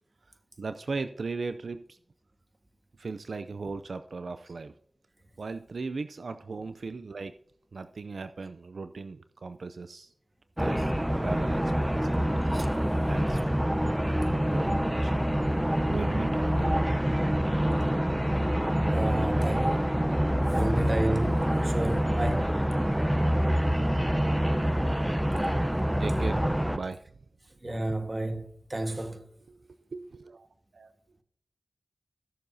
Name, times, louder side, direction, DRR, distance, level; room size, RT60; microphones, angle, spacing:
voice 1, 0.6-2.0 3.0-4.7 5.4-7.3 7.7-10.1 10.6-12.2 13.1-13.5 14.3-15.1 15.9-17.2 26.0-27.0 29.5-29.6 29.9-30.5 30.7-30.9, right 4 dB, 70° right, 0.4 m, -38 dB
sound 1, 10.6-26.8, equal, 10° right, 0.7 m, -26 dB
voice 2, 18.9-19.9 20.5-22.6 27.6-29.2, right 1 dB, 30° right, 1.4 m, -32 dB
16.0 x 6.9 x 2.7 m
wide cardioid pair, 75°, 0 cm